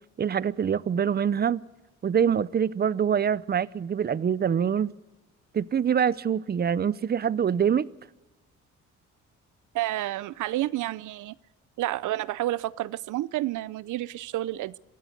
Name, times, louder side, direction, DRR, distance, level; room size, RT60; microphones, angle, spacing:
voice 1, 0.2-1.6 2.0-4.9 5.5-7.9, right 8 dB, 30° right, 0.6 m, -25 dB
voice 2, 9.7-11.4 11.8-14.8, right 15 dB, 80° right, 0.6 m, -30 dB
23.5 x 14.5 x 8.0 m
cardioid pair, 90°, 30 cm